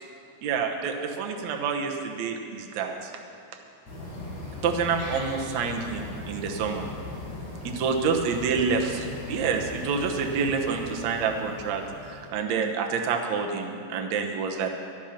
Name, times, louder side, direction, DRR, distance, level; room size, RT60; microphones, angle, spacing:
voice 1, 0.4-3.1 4.6-6.8 7.6-14.7, right 5 dB, 65° right, 2 dB, 2.1 m, -28 dB
sound 1, 3.9-12.3, left 2 dB, 50° left, 4.9 m, -39 dB
13.5 x 10.5 x 5.8 m, 2.7 s
omnidirectional pair, 3.7 m